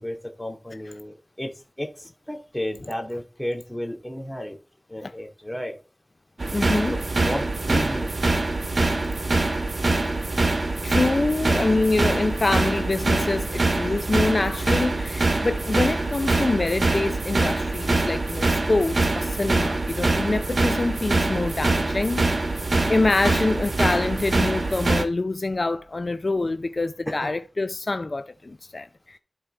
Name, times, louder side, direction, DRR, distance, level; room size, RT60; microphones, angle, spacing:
voice 1, 0.0-4.6 4.9-5.8 6.9-8.3 27.1-27.3, equal, 10° left, 2.5 m, -33 dB
sound 1, 6.4-25.0, right 2 dB, 75° right, 1.3 m, -24 dB
voice 2, 6.5-7.0 10.8-22.3 22.9-29.2, left 2 dB, 65° left, 0.4 m, -25 dB
12.5 x 4.6 x 4.4 m
wide cardioid pair, 55°, 0 cm